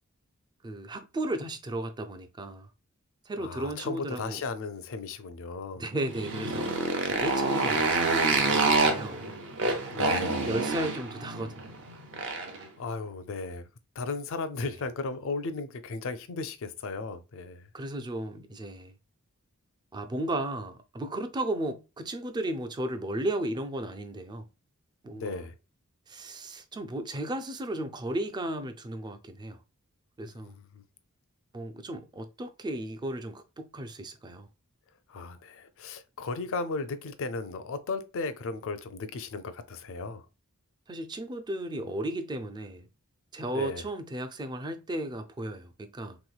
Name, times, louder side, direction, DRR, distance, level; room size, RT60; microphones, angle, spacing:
voice 1, 0.6-2.7 3.3-4.4 5.8-6.7 7.1-9.4 10.4-11.7 14.6-14.7 17.7-18.9 19.9-24.4 25.0-25.5 26.1-29.6 30.2-30.6 31.5-34.5 40.9-42.9 43.3-46.2, right 1 dB, 20° right, 0.4 m, -35 dB
voice 2, 3.4-5.8 9.9-10.5 12.8-13.6 14.0-17.7 25.1-25.5 30.2-30.8 35.1-40.2 43.5-43.8, left 3 dB, 65° left, 0.5 m, -35 dB
Motorcycle, 6.0-12.6, right 3 dB, 60° right, 0.7 m, -27 dB
3.4 x 3.0 x 2.3 m
head